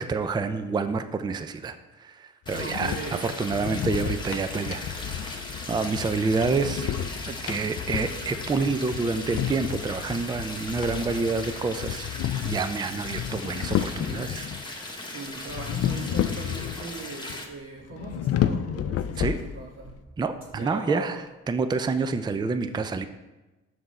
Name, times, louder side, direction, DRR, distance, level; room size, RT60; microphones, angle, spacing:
voice 1, 0.0-4.8 5.3-5.4 5.7-6.9 7.3-12.1 12.4-14.5 19.2-19.4 20.2-21.2 21.5-23.1, right 4 dB, 15° right, 10 dB, 0.4 m, -28 dB
sound 1, 2.5-14.6 15.5-17.0 17.3-17.4 17.9-19.9, left 10 dB, 55° left, 0.4 m, -31 dB
sound 2, 2.5-17.4, left 2 dB, 15° left, 1.1 m, -38 dB
voice 2, 2.5-3.3 15.0-20.0 20.5-21.2, right 3 dB, 45° right, -3 dB, 1.1 m, -39 dB
6.4 x 5.9 x 4.2 m, 1.1 s
cardioid pair, 90°, 30 cm